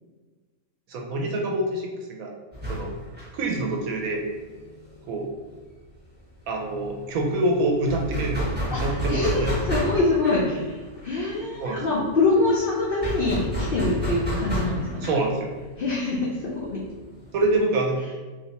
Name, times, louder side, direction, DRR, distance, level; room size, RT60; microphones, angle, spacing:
voice 1, 0.9-2.3 2.7-2.9 3.3-4.2 5.1-5.3 6.5-9.5 11.6-11.8 15.0-15.5 17.3-18.0, right 2 dB, 75° right, 1 dB, 1.0 m, -26 dB
sound 1, 2.5-5.9 6.2-6.3 6.6-17.6, equal, 10° right, 0.5 m, -31 dB
voice 2, 8.7-15.1 15.8-16.8, left 2 dB, 80° left, -4 dB, 0.5 m, -25 dB
3.1 x 2.7 x 2.8 m, 1.3 s
omnidirectional pair, 1.6 m